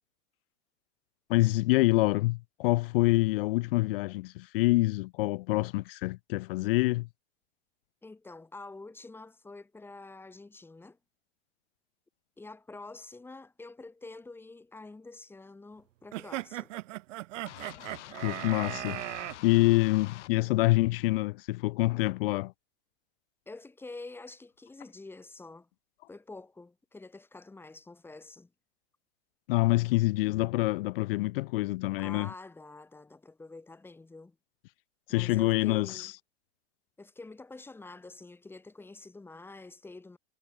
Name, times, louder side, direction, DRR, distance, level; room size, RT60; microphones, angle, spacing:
voice 1, 1.3-7.1 18.2-19.0 19.4-22.5 29.5-32.3 35.1-36.1, left 20 dB, 50° left, 0.5 m, -26 dB
voice 2, 8.0-11.0 12.4-16.7 23.5-25.7 26.1-28.5 32.0-34.4 35.1-36.1 37.0-40.2, left 3 dB, 5° left, 2.0 m, -47 dB
sound 1, 16.1-19.4, right 16 dB, 80° right, 0.7 m, -38 dB
sound 2, 17.5-20.3, left 15 dB, 65° left, 4.4 m, -47 dB
supercardioid pair, 150°, 37 cm